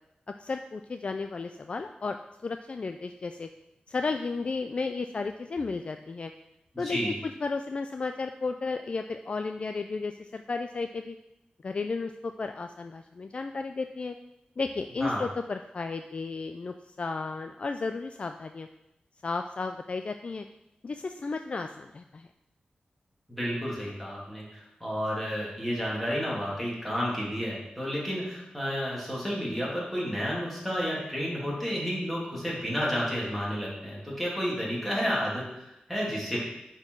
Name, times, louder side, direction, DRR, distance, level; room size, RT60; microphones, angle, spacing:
voice 1, 0.4-2.2 2.4-3.5 3.9-6.3 6.8-7.1 7.4-11.2 11.6-14.1 14.6-18.7 19.2-20.5 20.8-22.3, left 4 dB, 40° left, 7 dB, 0.3 m, -33 dB
voice 2, 6.7-7.1 15.0-15.2 23.3-36.4, equal, 5° left, -6 dB, 2.6 m, -31 dB
9.6 x 4.5 x 4.5 m, 0.90 s
wide cardioid pair, 145°, 3 cm